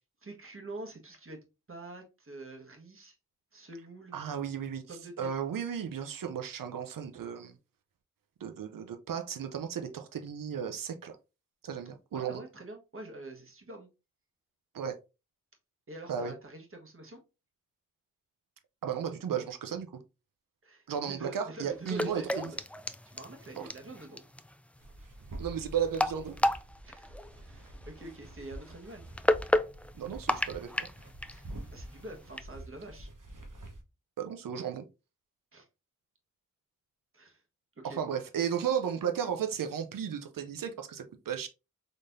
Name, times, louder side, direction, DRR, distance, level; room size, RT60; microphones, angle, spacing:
voice 1, 0.2-1.4 1.7-3.1 3.5-4.2 4.9-5.4 12.1-13.9 15.9-17.2 20.6-22.6 23.1-24.2 26.8-29.0 31.3-33.1 35.5-35.7 37.1-37.4 37.8-38.0, right 2 dB, 40° right, 1.3 m, -46 dB
voice 2, 4.1-4.8 5.2-7.5 8.4-11.2 11.6-12.4 14.7-15.0 16.1-16.3 18.8-19.9 20.9-22.5 23.6-23.7 25.4-26.4 29.9-30.9 34.2-34.8 37.8-41.5, right 8 dB, 90° right, 0.6 m, -34 dB
sound 1, 21.7-32.4, left 1 dB, 5° left, 0.4 m, -34 dB
sound 2, 24.8-33.8, right 1 dB, 70° right, 1.1 m, -47 dB
4.1 x 3.2 x 2.6 m
cardioid pair, 40°, 32 cm